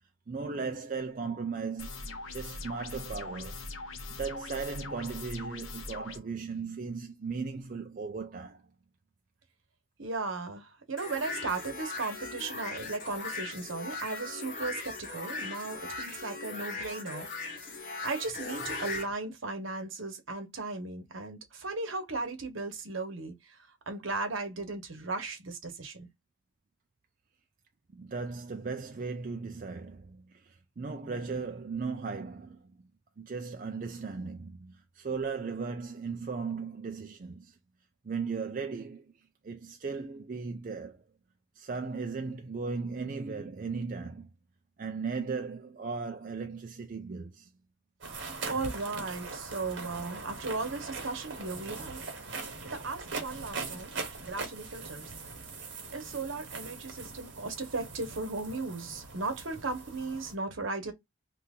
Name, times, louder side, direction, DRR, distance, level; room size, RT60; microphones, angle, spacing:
voice 1, 0.3-3.6 4.1-8.6 27.9-32.8 33.2-37.6 38.0-39.1 39.4-41.0 41.6-44.3 44.8-47.5, right 4 dB, 40° right, 0.4 m, -37 dB
sound 1, 1.8-6.2, left 3 dB, 80° left, 0.8 m, -41 dB
voice 2, 10.0-17.6 18.0-23.6 23.9-26.1 48.5-52.0 52.7-53.9 54.2-55.0 55.9-60.9, right 3 dB, 75° right, 1.1 m, -36 dB
sound 2, 11.0-19.0, left 3 dB, 45° left, 1.1 m, -39 dB
sound 3, 48.0-60.3, right 4 dB, 60° right, 1.2 m, -41 dB
2.8 x 2.6 x 3.5 m
head